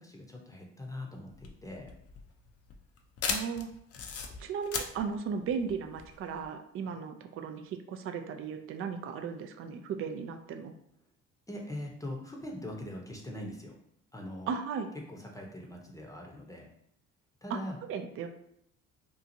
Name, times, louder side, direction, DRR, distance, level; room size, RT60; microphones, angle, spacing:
voice 1, 0.0-1.9 11.5-13.7 14.1-14.5 15.1-16.7 17.4-17.7, left 1 dB, 10° left, 0 dB, 0.7 m, -42 dB
sound 1, 1.3-6.5, left 5 dB, 45° left, 0.5 m, -38 dB
voice 2, 3.3-3.7 4.4-10.7 14.5-14.9 17.5-17.6 17.9-18.3, right 6 dB, 45° right, 7 dB, 0.4 m, -36 dB
2.8 x 2.4 x 2.6 m, 0.72 s
hypercardioid pair, 60°, 32 cm